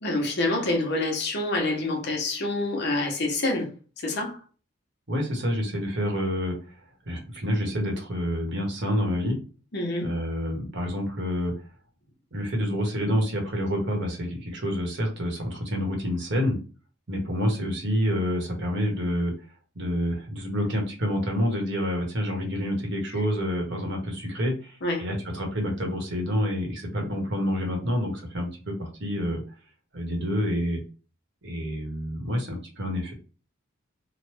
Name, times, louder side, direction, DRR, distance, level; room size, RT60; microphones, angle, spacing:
voice 1, 0.0-4.4 9.7-10.1 24.8-25.1, left 2 dB, 55° left, 0.8 m, -27 dB
voice 2, 5.1-6.7 7.1-9.4 10.0-11.5 12.3-16.6 17.1-19.3 19.7-29.4 29.9-30.8 31.4-33.1, equal, 60° right, 1.1 m, -28 dB
3.1 x 2.1 x 3.1 m
head